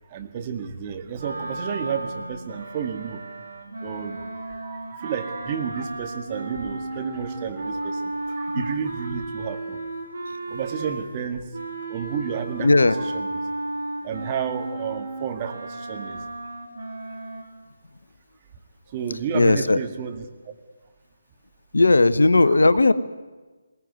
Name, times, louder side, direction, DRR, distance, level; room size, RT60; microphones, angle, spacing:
voice 1, 0.1-3.2 3.8-9.9 10.5-11.5 11.9-12.7 13.0-13.3 14.0-16.2 18.9-20.5 22.4-22.6, right 7 dB, 25° right, 5 dB, 2.0 m, -31 dB
sound 1, 1.1-11.2 11.5-17.4, right 2 dB, 65° right, 4.8 m, -34 dB
voice 2, 12.6-13.0 19.3-19.8 21.7-22.9, left 2 dB, 75° left, 13 dB, 1.2 m, -17 dB
20.5 x 19.5 x 9.4 m, 1.3 s
figure-of-eight pair, 150°, 0 cm